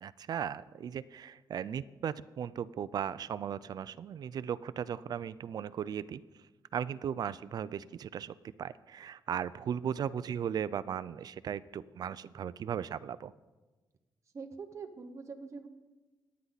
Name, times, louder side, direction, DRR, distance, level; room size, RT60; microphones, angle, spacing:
voice 1, 0.0-6.2 6.7-13.3, right 8 dB, 60° right, 16 dB, 0.5 m, -37 dB
voice 2, 14.3-15.7, right 4 dB, 40° right, 4 dB, 1.2 m, -44 dB
25.5 x 9.6 x 4.1 m, 1.2 s
wide cardioid pair, 135°, 8 cm